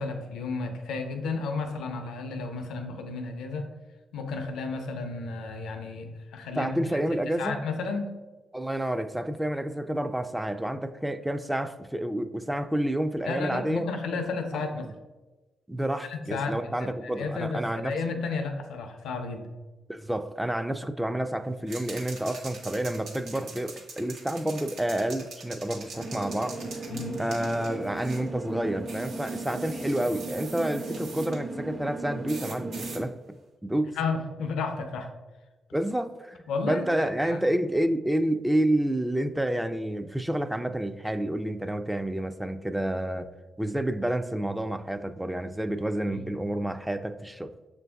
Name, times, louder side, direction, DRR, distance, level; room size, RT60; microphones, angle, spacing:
voice 1, 0.0-3.7 4.1-6.7 7.4-8.1 13.3-14.9 16.1-16.9 17.2-19.5 26.9-27.2 33.9-35.1 36.5-37.4 46.1-46.2, left 4 dB, 85° left, 5 dB, 0.5 m, -32 dB
voice 2, 6.6-7.6 8.5-13.9 14.5-14.6 15.7-17.9 19.9-33.2 33.6-33.9 35.7-43.3 43.6-47.5, right 1 dB, 10° right, 9 dB, 0.3 m, -29 dB
sound 1, 21.7-28.3 28.9-31.4 32.3-33.0, right 3 dB, 80° right, 0.7 m, -44 dB
sound 2, 25.9-33.0, right 2 dB, 60° right, 1.2 m, -37 dB
6.7 x 2.6 x 2.3 m, 1.2 s
supercardioid pair, 55°, 0 cm